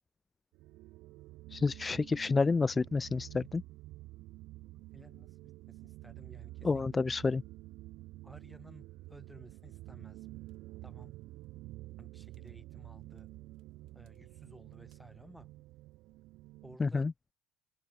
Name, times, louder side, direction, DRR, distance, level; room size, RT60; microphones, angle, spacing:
sound 1, 0.5-16.8, right 18 dB, 65° right, 1.6 m, -50 dB
voice 1, 1.5-3.6 6.6-7.4 16.8-17.1, left 4 dB, 20° left, 0.3 m, -29 dB
voice 2, 4.6-5.4 5.7-7.0 8.2-10.3 10.8-11.2 12.0-13.3 13.9-15.5 16.6-17.1, equal, ahead, 6.8 m, -56 dB
open air
cardioid pair, 135°, 0 cm